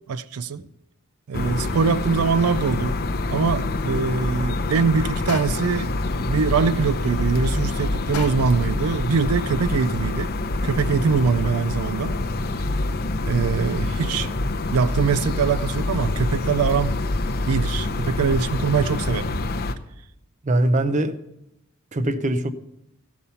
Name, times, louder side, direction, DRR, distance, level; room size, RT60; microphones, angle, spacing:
voice 1, 0.1-0.6 1.3-3.0 3.3-5.9 6.3-10.3 10.6-12.2 13.2-14.3 14.7-17.0 17.4-19.3, right 5 dB, 90° right, 0.4 m, -23 dB
sound 1, 1.3-19.7, left 2 dB, 45° left, 0.6 m, -26 dB
sound 2, 5.3-5.8 8.1-8.7, left 7 dB, 85° left, 0.6 m, -35 dB
voice 2, 20.4-21.2 21.9-22.5, right 1 dB, 35° right, 0.6 m, -22 dB
15.0 x 5.6 x 5.6 m
head